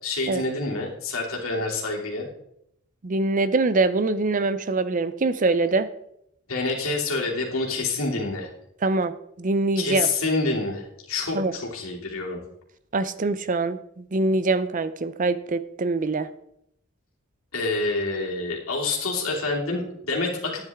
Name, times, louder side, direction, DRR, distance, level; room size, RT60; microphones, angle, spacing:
voice 1, 0.0-2.3 6.5-8.5 9.8-12.4 17.5-20.6, left 3 dB, 80° left, -2 dB, 2.7 m, -27 dB
voice 2, 3.0-5.9 8.8-9.1 9.4-10.1 11.3-11.5 12.9-16.3, right 3 dB, 40° right, 13 dB, 0.5 m, -24 dB
10.5 x 9.8 x 3.6 m, 0.76 s
head